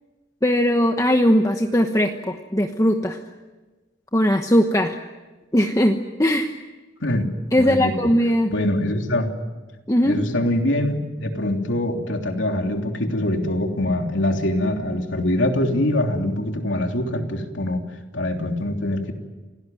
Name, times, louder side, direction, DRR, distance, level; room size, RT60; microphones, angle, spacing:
voice 1, 0.4-3.2 4.1-5.0 5.5-6.5 7.5-8.5 9.9-10.2, equal, 15° left, 4 dB, 1.1 m, -19 dB
voice 2, 7.6-8.1 8.5-9.3 10.0-17.8 18.1-19.1, left 1 dB, 85° left, 3 dB, 3.2 m, -23 dB
28.0 x 18.5 x 9.2 m, 1.2 s
head